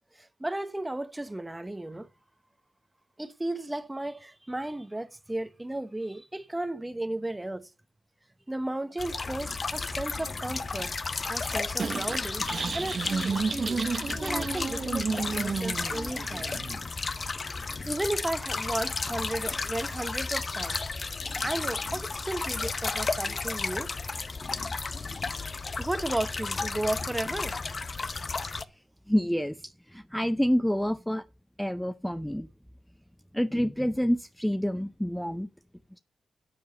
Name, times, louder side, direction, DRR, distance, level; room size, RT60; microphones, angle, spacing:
voice 1, 0.2-2.1 3.2-7.7 8.5-12.4 12.7-13.9 14.2-16.6 17.6-20.8 21.4-23.9 25.8-27.6, right 1 dB, 15° right, 1.0 m, -34 dB
sound 1, 9.0-28.6, left 4 dB, 45° left, 0.8 m, -33 dB
sound 2, 11.8-16.8, right 5 dB, 55° right, 0.9 m, -32 dB
voice 2, 29.1-31.3 31.6-32.5 33.3-35.5, equal, 5° left, 0.6 m, -28 dB
12.0 x 7.1 x 5.4 m
supercardioid pair, 50°, 0 cm